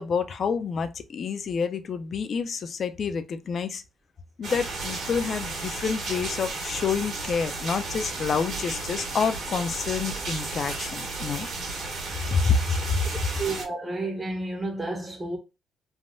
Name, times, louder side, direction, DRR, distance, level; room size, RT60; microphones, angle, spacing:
voice 1, 0.0-3.8 4.4-11.5 12.3-13.1, left 5 dB, 55° left, 0.4 m, -28 dB
sound 1, 4.4-13.6, right 3 dB, 70° right, 1.3 m, -33 dB
voice 2, 13.4-15.4, right 2 dB, 20° right, 0.6 m, -31 dB
3.4 x 2.2 x 2.4 m
cardioid pair, 90°, 0 cm